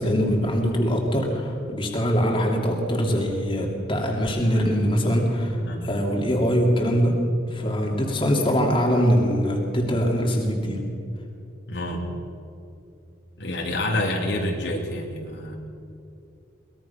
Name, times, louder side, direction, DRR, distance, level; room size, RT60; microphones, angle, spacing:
voice 1, 0.0-5.6 5.8-10.8, equal, 25° left, 0 dB, 2.9 m, -23 dB
voice 2, 11.7-12.1 13.4-15.6, left 1 dB, 60° left, 0 dB, 2.6 m, -28 dB
22.5 x 20.5 x 5.8 m, 2.6 s
head